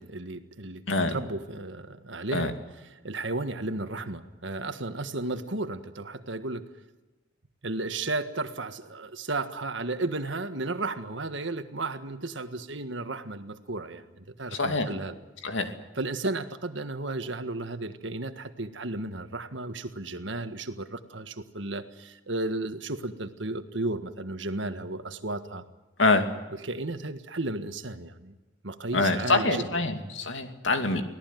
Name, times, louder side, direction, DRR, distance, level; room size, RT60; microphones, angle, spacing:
voice 1, 0.0-6.7 7.6-15.2 15.9-25.6 26.5-28.4 28.6-30.1, right 2 dB, 65° right, 9 dB, 1.7 m, -34 dB
voice 2, 14.5-14.9 15.4-15.7 26.0-26.3 28.9-31.0, left 3 dB, 65° left, 6 dB, 2.7 m, -25 dB
24.5 x 17.5 x 9.3 m, 1.1 s
head